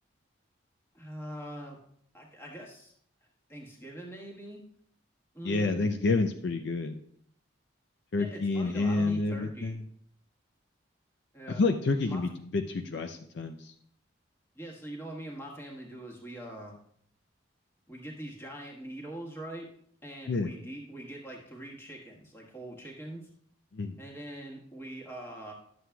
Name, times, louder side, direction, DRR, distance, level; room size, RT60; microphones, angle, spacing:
voice 1, 0.9-1.8 2.1-2.9 3.5-4.6 5.3-5.8 8.2-9.8 11.3-11.6 12.1-12.2 14.5-16.8 17.9-19.7 20.0-23.2 24.0-25.5, right 1 dB, 10° left, -2 dB, 1.4 m, -43 dB
voice 2, 5.4-6.9 8.1-9.8 11.6-13.7 20.3-20.5 23.7-24.0, left 3 dB, 60° left, 6 dB, 0.4 m, -29 dB
11.0 x 7.6 x 2.3 m, 0.65 s
head